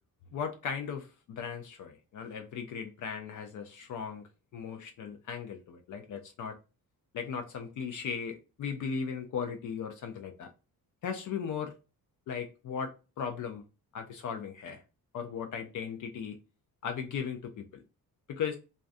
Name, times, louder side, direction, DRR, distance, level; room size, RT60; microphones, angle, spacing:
voice 1, 0.3-4.2 4.5-6.6 7.1-10.5 11.0-11.7 12.3-13.6 13.9-14.8 15.1-16.4 16.8-17.8 18.3-18.6, left 6 dB, 60° left, 0.4 m, -37 dB
2.4 x 2.2 x 2.5 m
wide cardioid pair, 135°, 36 cm